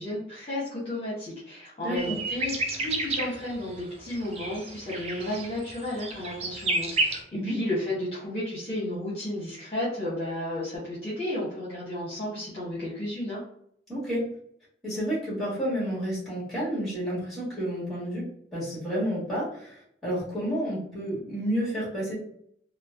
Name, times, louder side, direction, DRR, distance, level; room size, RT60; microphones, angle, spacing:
voice 1, 0.0-13.4, left 1 dB, 30° left, -8 dB, 0.9 m, -33 dB
voice 2, 1.8-2.2 7.3-7.6 13.9-14.3 14.8-22.1, equal, ahead, -8 dB, 1.5 m, -30 dB
sound 1, 2.0-7.2, right 2 dB, 35° right, 0.3 m, -31 dB
3.1 x 2.1 x 2.4 m, 0.68 s
head